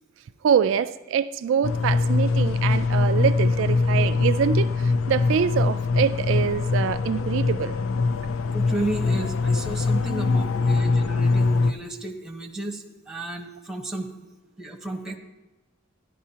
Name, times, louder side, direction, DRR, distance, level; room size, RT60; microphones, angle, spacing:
voice 1, 0.4-7.8, right 7 dB, 65° right, 0.3 m, -25 dB
sound 1, 1.6-11.7, left 3 dB, 75° left, 0.4 m, -23 dB
voice 2, 8.5-14.1 14.6-15.2, right 1 dB, 5° right, 0.9 m, -32 dB
13.5 x 11.0 x 2.8 m
head